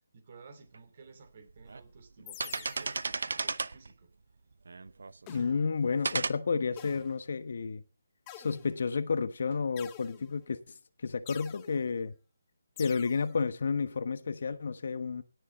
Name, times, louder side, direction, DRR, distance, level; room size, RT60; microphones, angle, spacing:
voice 1, 0.1-3.2 3.4-4.1, right 5 dB, 45° right, 2.6 m, -54 dB
sound 1, 0.7-0.8 1.5-1.8 2.2-3.9 4.7-5.4 6.0-6.3, right 4 dB, 75° right, 0.8 m, -34 dB
sound 2, 2.3-3.1 5.3-5.8 6.8-7.3 8.3-9.0 9.8-10.5 11.3-11.8 12.8-13.3, left 13 dB, 20° left, 0.8 m, -49 dB
voice 2, 5.3-7.8 8.4-10.6 11.0-12.1 12.8-15.2, left 5 dB, 55° left, 1.2 m, -31 dB
17.0 x 7.1 x 4.0 m
hypercardioid pair, 160°, 0 cm